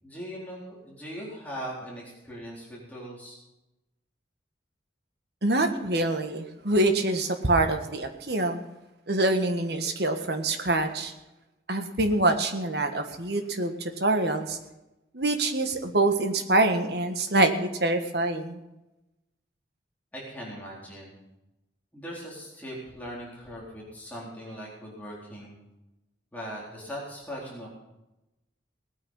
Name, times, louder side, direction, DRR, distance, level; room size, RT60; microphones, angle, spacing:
voice 1, 0.0-3.4 20.1-21.2 21.9-25.6 26.3-27.7, equal, 10° left, -5 dB, 4.0 m, -40 dB
voice 2, 5.4-8.6 9.1-11.1 11.7-14.6 15.1-18.6, right 2 dB, 65° right, 6 dB, 1.6 m, -25 dB
19.0 x 9.5 x 5.6 m, 0.95 s
head